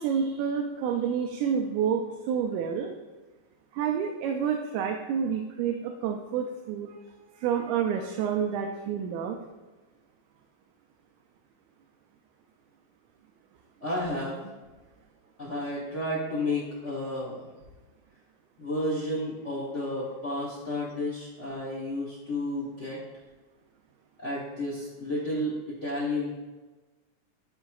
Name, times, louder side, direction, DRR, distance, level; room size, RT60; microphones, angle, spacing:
voice 1, 0.0-2.9 3.7-7.0 7.4-9.4, right 7 dB, 90° right, 3 dB, 2.0 m, -29 dB
voice 2, 13.8-14.5 15.4-17.5 18.6-23.0 24.2-25.5 25.8-26.3, left 1 dB, 80° left, -7 dB, 0.6 m, -31 dB
11.5 x 4.3 x 2.3 m, 1.2 s
omnidirectional pair, 3.4 m